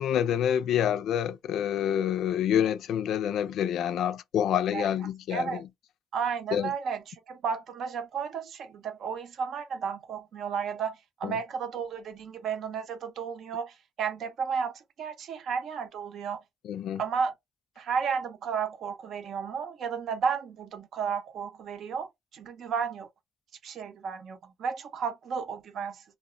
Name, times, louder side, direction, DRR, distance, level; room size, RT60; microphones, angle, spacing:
voice 1, 0.0-5.6 6.5-6.7 11.2-11.4 16.6-17.0, left 9 dB, 75° left, 0.3 m, -27 dB
voice 2, 5.3-5.6 6.1-16.4 17.0-17.3 17.8-23.1 23.6-26.0, right 6 dB, 70° right, 0.6 m, -33 dB
2.1 x 2.0 x 3.7 m
cardioid pair, 90°, 0 cm